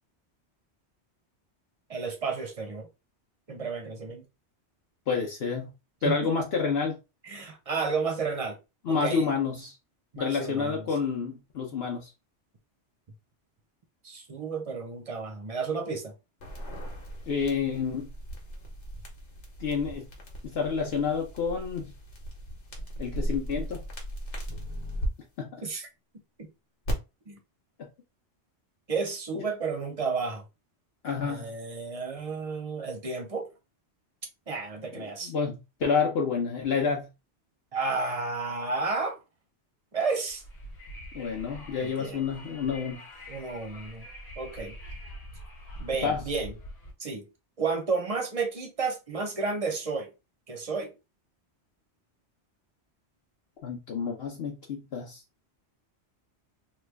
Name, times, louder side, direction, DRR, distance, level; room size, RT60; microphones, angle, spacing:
voice 1, 1.9-2.9 3.5-4.2 6.0-6.3 7.2-8.6 8.9-9.3 10.1-10.8 14.0-16.1 25.6-25.9 27.3-27.4 28.9-30.4 31.2-33.5 34.5-35.3 37.7-39.2 39.9-40.4 41.8-42.2 42.7-42.8 43.3-44.1 44.4-44.7 45.8-46.5 47.0-47.3 47.6-50.1 50.5-50.9, right 4 dB, 40° right, 0.6 m, -32 dB
voice 2, 5.1-5.7 6.0-7.0 8.8-9.7 10.2-12.1 17.3-18.1 19.6-20.1 20.4-21.9 23.0-23.8 25.4-25.6 31.0-31.5 34.9-37.1 41.1-43.0 46.0-46.3 53.6-55.2, left 5 dB, 65° left, 0.9 m, -29 dB
sound 1, 16.4-25.1 26.9-27.0, equal, 80° left, 1.3 m, -37 dB
Wind, 40.3-46.9, equal, 35° left, 0.9 m, -44 dB
3.1 x 2.3 x 3.3 m
omnidirectional pair, 1.2 m